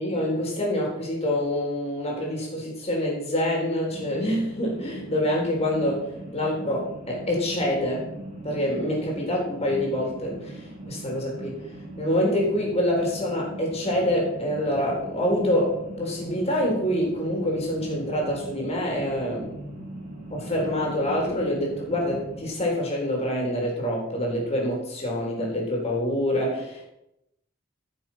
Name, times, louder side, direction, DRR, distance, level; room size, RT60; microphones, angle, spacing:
voice 1, 0.0-8.1 8.4-11.6 12.0-19.5 20.3-26.9, left 1 dB, 35° left, -2 dB, 3.8 m, -26 dB
sound 1, 3.9-22.4, right 1 dB, 40° right, 3.5 m, -40 dB
14.5 x 7.0 x 5.7 m, 0.87 s
head